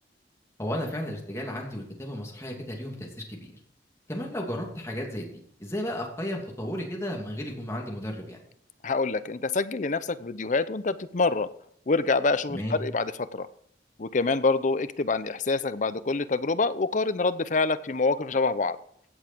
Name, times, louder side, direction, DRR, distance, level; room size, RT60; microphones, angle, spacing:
voice 1, 0.6-3.5 4.1-5.3 5.6-8.4 12.5-12.8, equal, 15° left, -1 dB, 2.7 m, -33 dB
voice 2, 8.8-11.5 11.9-13.5 14.0-18.8, left 3 dB, 45° left, 14 dB, 0.6 m, -26 dB
16.0 x 7.2 x 4.6 m, 0.68 s
head